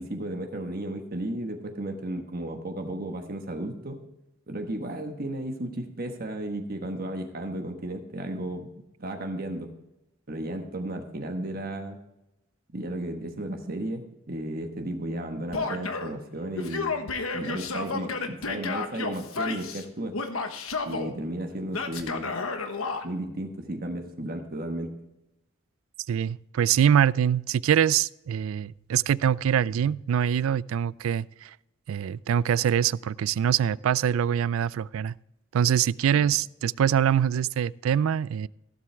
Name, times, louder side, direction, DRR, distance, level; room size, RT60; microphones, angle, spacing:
voice 1, 0.0-4.0 4.5-8.7 9.0-9.7 10.3-12.0 12.7-17.0 17.3-20.1 20.8-22.3 23.0-24.9 36.1-36.2, right 1 dB, 45° right, 1.3 m, -34 dB
Male speech man speaking / Yell, 15.5-16.1 16.6-19.8 20.1-21.1 21.7-23.0, left 4 dB, 85° left, 1.2 m, -31 dB
voice 2, 26.1-31.5 31.9-35.1 35.5-38.5, right 9 dB, 80° right, 0.3 m, -24 dB
16.0 x 7.7 x 3.4 m
head